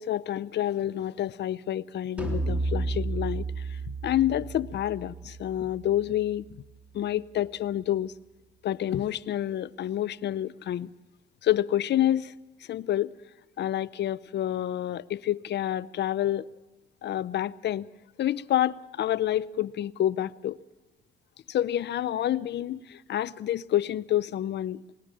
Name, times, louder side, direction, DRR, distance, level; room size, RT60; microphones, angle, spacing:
voice 1, 0.0-3.5 3.9-6.5 6.9-8.1 8.6-10.9 11.4-12.3 12.7-13.1 13.6-16.5 17.0-17.9 18.2-20.6 21.5-24.8, left 12 dB, 60° left, 0.6 m, -28 dB
sound 1, 2.2-7.6, right 3 dB, 5° right, 3.4 m, -34 dB
21.0 x 18.5 x 7.5 m
cardioid pair, 90°, 20 cm